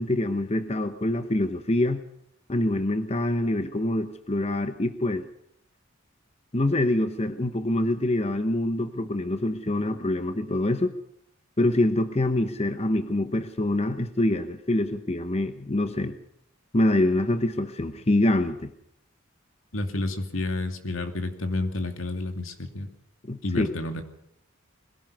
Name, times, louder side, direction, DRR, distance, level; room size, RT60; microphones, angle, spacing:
voice 1, 0.0-2.0 2.5-5.3 6.5-10.9 11.6-16.1 16.7-18.7 23.2-23.7, left 1 dB, 30° left, 9 dB, 1.0 m, -25 dB
voice 2, 19.7-22.9 23.4-24.0, left 2 dB, 80° left, 6 dB, 2.5 m, -30 dB
22.0 x 17.0 x 7.0 m, 0.71 s
head